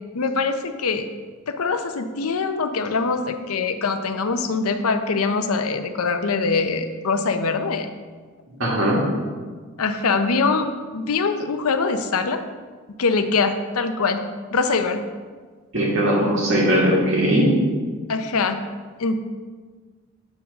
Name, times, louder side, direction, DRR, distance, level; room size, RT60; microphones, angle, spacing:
voice 1, 0.1-1.1 1.5-7.9 9.8-10.7 10.9-12.4 13.0-14.2 14.5-15.0 18.1-18.6 19.0-19.2, left 4 dB, 80° left, 8 dB, 0.6 m, -23 dB
voice 2, 8.6-9.0 15.7-17.5, equal, 55° right, -4 dB, 2.1 m, -19 dB
7.8 x 4.6 x 5.4 m, 1.5 s
head